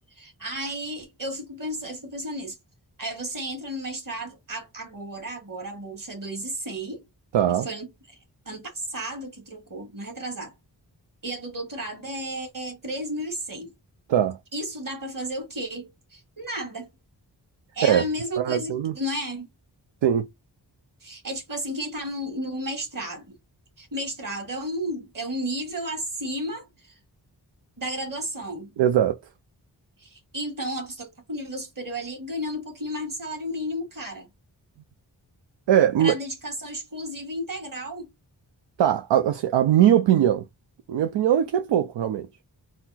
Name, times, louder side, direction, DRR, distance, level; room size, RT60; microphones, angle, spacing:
voice 1, 0.1-2.6 3.0-7.1 7.5-8.2 8.5-10.5 11.2-13.7 14.5-16.9 17.7-19.5 21.0-23.4 23.8-26.9 27.8-28.8 30.0-34.3 36.0-38.1, equal, 50° right, 2.0 m, -33 dB
voice 2, 7.3-7.7 14.1-14.4 17.8-18.0 18.4-18.9 20.0-20.3 28.8-29.2 35.7-36.2 38.8-40.4 40.9-42.3, right 10 dB, 85° right, 0.5 m, -20 dB
4.1 x 2.0 x 4.1 m
cardioid pair, 45°, 43 cm